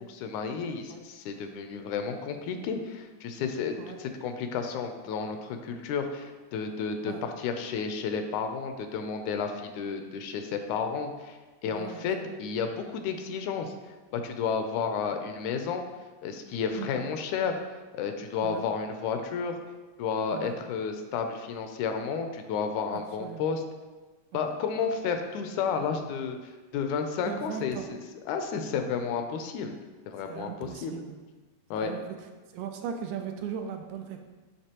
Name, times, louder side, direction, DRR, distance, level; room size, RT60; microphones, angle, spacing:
voice 1, 0.1-11.4 11.6-13.7 14.1-15.8 16.2-17.6 17.9-19.6 20.0-23.6 24.3-26.4 26.7-28.0 28.3-29.8 30.1-30.9 31.7-31.9, left 6 dB, 85° left, 6 dB, 2.0 m, -32 dB
voice 2, 11.7-12.4 16.8-17.1 18.4-18.6 20.3-20.5 22.9-23.6 24.3-24.6 27.3-27.9 30.3-31.2 31.8-32.0 32.5-34.2, right 8 dB, 85° right, 5 dB, 2.0 m, -38 dB
9.9 x 3.4 x 2.9 m, 1.3 s
omnidirectional pair, 3.4 m